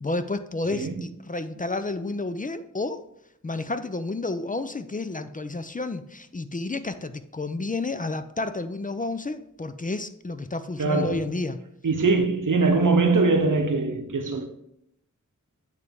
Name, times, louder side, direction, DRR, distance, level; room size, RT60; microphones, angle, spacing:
voice 1, 0.0-3.0 3.4-11.6, left 2 dB, 25° left, 0.4 m, -31 dB
voice 2, 0.7-1.0 10.8-11.2 11.8-14.5, right 3 dB, 85° right, 0.8 m, -22 dB
9.1 x 3.3 x 3.5 m
wide cardioid pair, 50°, 31 cm